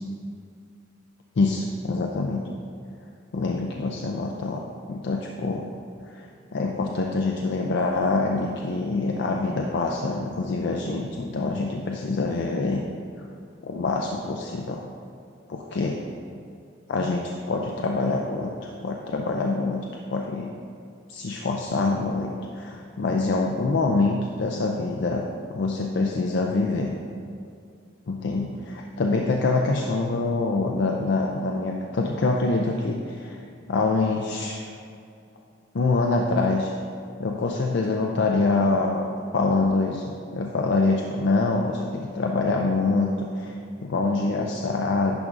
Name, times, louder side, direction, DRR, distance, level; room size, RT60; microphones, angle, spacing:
voice 1, 1.4-2.4 3.3-4.6 4.9-5.6 6.1-6.3 6.5-12.8 13.6-14.9 15.5-16.0 16.9-18.5 18.8-20.5 21.1-26.9 28.1-33.4 33.7-34.6 35.7-36.7 37.2-39.1 39.3-40.0 40.3-43.5 43.8-45.2, left 3 dB, 60° left, 1 dB, 0.4 m, -25 dB
10.5 x 5.2 x 2.5 m, 2.4 s
head